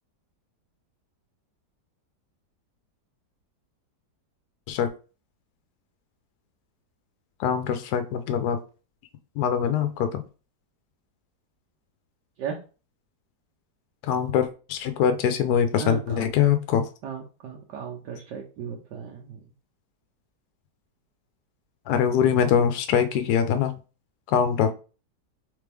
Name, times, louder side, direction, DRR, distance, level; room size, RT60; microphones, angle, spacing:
voice 1, 7.4-8.6 9.3-10.2 14.0-16.9 21.9-23.7 24.3-24.7, left 8 dB, 75° left, 8 dB, 1.1 m, -23 dB
voice 2, 15.8-16.3 17.0-19.4, right 6 dB, 90° right, -1 dB, 1.4 m, -36 dB
3.4 x 3.3 x 3.4 m, 0.35 s
omnidirectional pair, 1.8 m